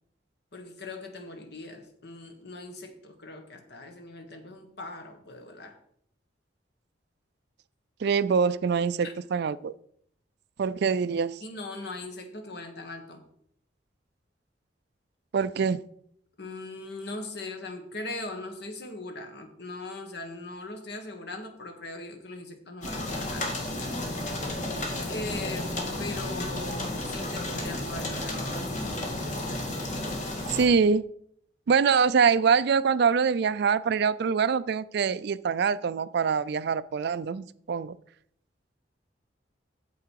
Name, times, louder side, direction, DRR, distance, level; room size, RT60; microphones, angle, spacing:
voice 1, 0.5-5.8 9.0-9.1 11.4-13.2 16.4-23.7 25.1-29.0, left 2 dB, 65° left, 1.5 m, -40 dB
voice 2, 8.0-9.7 10.6-11.4 15.3-15.8 30.5-31.1 31.7-38.0, right 6 dB, 60° right, 0.4 m, -24 dB
sound 1, 22.8-30.7, left 1 dB, 45° left, 2.0 m, -32 dB
8.6 x 7.6 x 4.7 m
head